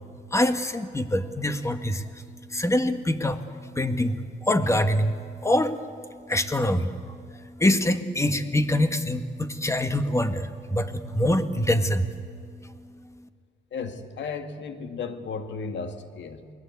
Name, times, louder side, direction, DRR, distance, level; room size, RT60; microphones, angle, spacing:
voice 1, 0.3-2.0 2.5-3.4 3.7-5.1 5.4-5.7 6.3-6.9 7.6-12.1, left 1 dB, 15° left, 9 dB, 1.7 m, -24 dB
voice 2, 13.7-16.5, left 5 dB, 65° left, 7 dB, 2.1 m, -34 dB
28.5 x 19.5 x 8.4 m, 2.2 s
cardioid pair, 85°, 20 cm